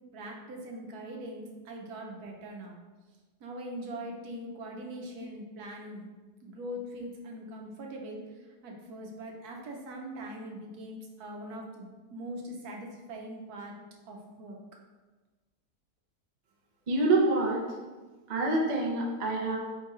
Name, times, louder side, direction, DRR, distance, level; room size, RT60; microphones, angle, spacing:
voice 1, 0.1-2.8 3.4-6.1 6.4-8.2 8.6-13.7 14.1-14.6, right 1 dB, 75° right, 0 dB, 1.2 m, -41 dB
voice 2, 16.9-17.6 18.3-19.6, right 2 dB, 50° right, -1 dB, 0.5 m, -26 dB
4.4 x 2.5 x 4.1 m, 1.3 s
omnidirectional pair, 1.7 m